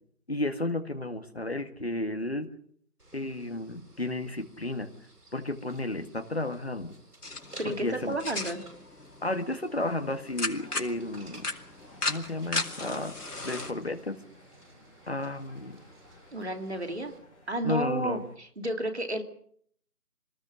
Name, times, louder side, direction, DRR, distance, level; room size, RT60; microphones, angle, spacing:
voice 1, 0.3-2.5 3.1-4.9 5.3-6.9 7.8-8.1 9.2-11.4 12.1-13.1 13.4-14.2 15.1-15.8 17.6-18.2, left 2 dB, 40° left, 7 dB, 2.0 m, -32 dB
sound 1, 3.0-17.2, right 1 dB, 80° right, 7.7 m, -55 dB
sound 2, 7.2-13.7, left 2 dB, 75° left, 4.1 m, -36 dB
voice 2, 7.6-8.6 16.3-17.1 17.5-19.2, right 1 dB, 45° right, 6 dB, 2.7 m, -31 dB
sound 3, 10.2-18.4, left 1 dB, 20° left, 6.1 m, -57 dB
26.0 x 19.5 x 6.3 m, 0.64 s
figure-of-eight pair, 180°, 47 cm